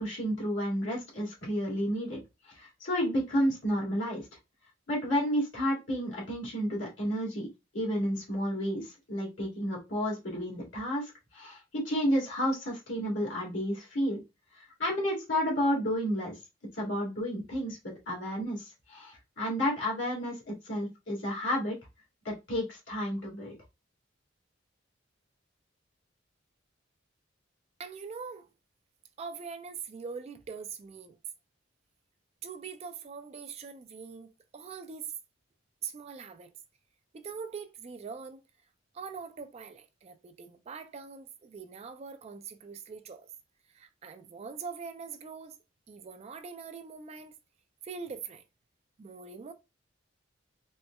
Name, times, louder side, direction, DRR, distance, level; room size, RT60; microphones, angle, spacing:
voice 1, 0.0-4.3 4.9-14.2 14.5-16.4 16.7-21.7 22.2-23.6, equal, 70° left, 1.6 m, -31 dB
voice 2, 27.8-28.5 29.2-31.2 32.4-35.1 35.8-36.5 37.1-38.4 38.9-43.3 43.7-45.6 45.9-47.3 47.8-48.4 49.0-49.5, right 5 dB, 35° right, 0.3 m, -42 dB
4.2 x 2.1 x 2.2 m
head